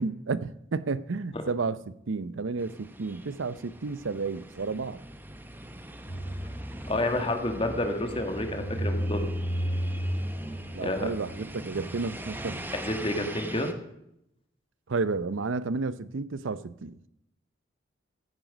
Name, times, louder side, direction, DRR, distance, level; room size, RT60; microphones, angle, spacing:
voice 1, 0.0-5.0 10.7-12.6 14.9-17.0, right 4 dB, 80° right, 0.6 m, -31 dB
sound 1, 2.6-13.7, right 1 dB, 10° right, 0.8 m, -41 dB
sound 2, 6.1-12.7, equal, 50° left, 2.5 m, -34 dB
voice 2, 6.9-9.3 10.8-11.1 12.7-13.7, left 1 dB, 30° left, 1.6 m, -29 dB
15.5 x 9.1 x 5.1 m
head